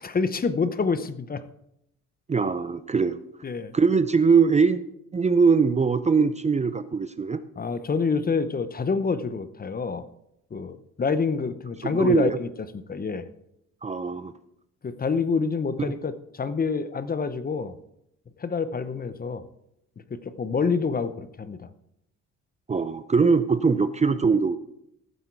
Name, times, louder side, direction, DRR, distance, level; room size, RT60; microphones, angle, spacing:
voice 1, 0.0-1.4 3.4-3.7 7.6-10.0 10.5-12.5 12.7-13.3 14.8-17.7 18.4-19.4 20.1-21.7, left 5 dB, 30° left, 13 dB, 0.8 m, -27 dB
voice 2, 2.3-3.2 3.7-4.8 5.1-7.4 11.8-12.4 13.8-14.3 15.8-15.9 22.7-24.6, right 5 dB, 25° right, 12 dB, 0.5 m, -21 dB
14.5 x 7.8 x 4.6 m, 0.80 s
cardioid pair, 90°, 30 cm